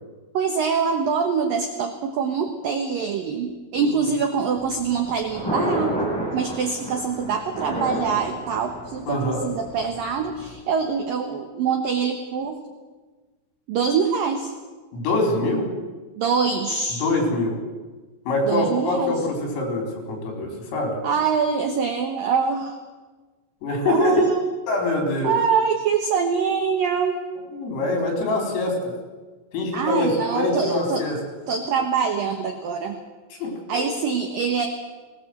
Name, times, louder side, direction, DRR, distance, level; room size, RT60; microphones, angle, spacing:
voice 1, 0.3-5.9 6.3-12.6 13.7-14.5 16.1-17.0 18.5-19.1 21.0-22.8 23.9-24.4 25.2-27.2 29.7-31.0 31.5-33.0 33.7-34.7, right 6 dB, 70° right, 5 dB, 2.2 m, -24 dB
Thunder, 4.6-10.6, equal, 5° left, 6.5 m, -31 dB
voice 2, 9.1-9.4 14.9-15.7 17.0-17.6 18.3-21.0 23.6-24.2 24.7-25.4 27.5-28.9 29.5-31.2 33.3-33.8, left 2 dB, 85° left, 2 dB, 7.1 m, -24 dB
21.0 x 18.5 x 7.9 m, 1.3 s
omnidirectional pair, 5.9 m